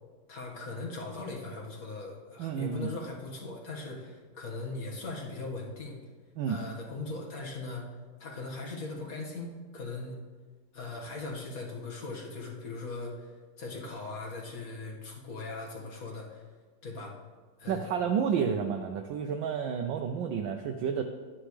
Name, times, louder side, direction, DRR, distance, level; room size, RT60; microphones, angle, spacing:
voice 1, 0.3-6.0 6.4-7.9 8.2-10.2 10.7-13.3 13.6-16.4 16.8-17.1 17.6-17.9, left 3 dB, 45° left, -1 dB, 2.0 m, -39 dB
voice 2, 2.4-2.9 6.4-6.6 17.7-21.0, right 7 dB, 75° right, 4 dB, 1.3 m, -30 dB
12.5 x 9.7 x 3.2 m, 1.4 s
omnidirectional pair, 2.2 m